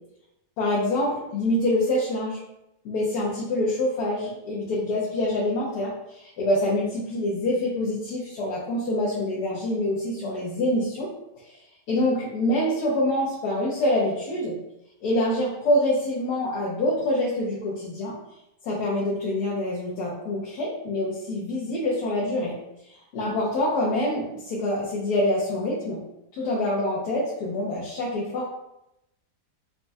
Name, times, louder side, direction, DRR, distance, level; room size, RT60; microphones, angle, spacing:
voice 1, 0.6-2.4 2.8-11.1 11.4-11.5 11.9-14.6 15.0-18.1 18.6-22.5 22.9-26.0 26.3-28.5, left 1 dB, 75° left, -6 dB, 1.2 m, -26 dB
4.3 x 2.2 x 2.5 m, 0.87 s
omnidirectional pair, 1.8 m